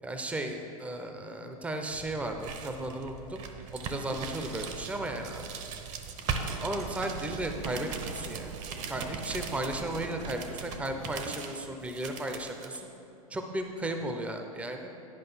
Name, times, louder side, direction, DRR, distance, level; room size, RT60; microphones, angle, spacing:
voice 1, 0.0-3.4 3.7-5.4 6.6-8.5 8.9-12.9 13.3-14.9, right 1 dB, 5° right, 5 dB, 0.7 m, -35 dB
sound 1, 1.9-12.8, right 5 dB, 40° right, 0.9 m, -39 dB
sound 2, 6.4-11.3, right 5 dB, 90° right, 0.6 m, -45 dB
11.0 x 5.2 x 5.6 m, 2.9 s
hypercardioid pair, 110°, 19 cm